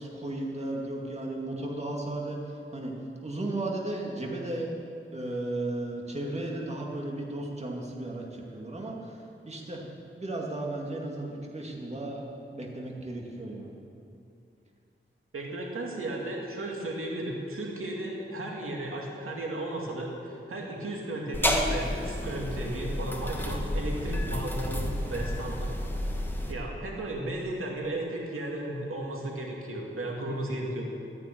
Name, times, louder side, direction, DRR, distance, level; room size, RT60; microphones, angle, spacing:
voice 1, 0.0-2.9 3.2-4.8 5.1-9.8 10.2-12.3 12.5-13.7, right 2 dB, 30° right, -1 dB, 2.3 m, -35 dB
voice 2, 15.3-26.1 26.5-30.9, right 1 dB, 85° right, -1 dB, 2.5 m, -35 dB
sound 1, 21.3-26.5, left 1 dB, 10° left, 1.5 m, -30 dB
13.5 x 10.0 x 9.2 m, 2.6 s
wide cardioid pair, 100°, 21 cm